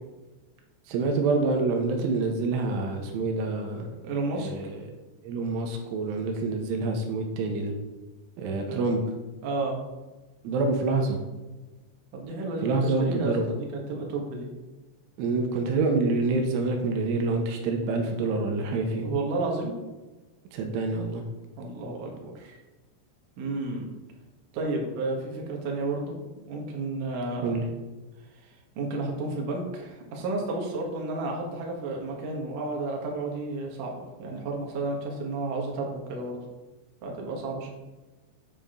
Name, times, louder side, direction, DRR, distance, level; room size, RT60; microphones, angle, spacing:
voice 1, 0.9-3.9 4.3-4.8 5.2-7.7 8.4-9.0 10.4-11.2 12.6-13.5 15.2-19.1 20.5-21.2 27.4-27.7, right 3 dB, 80° right, 3 dB, 3.4 m, -27 dB
voice 2, 4.0-4.5 8.5-8.9 9.4-9.8 12.1-14.5 19.0-19.7 21.6-22.6 23.4-23.9 24.5-26.1 26.5-27.6 28.3-36.4 37.0-37.7, right 2 dB, 60° right, -1 dB, 2.3 m, -32 dB
8.6 x 7.6 x 3.8 m, 1.2 s
omnidirectional pair, 5.6 m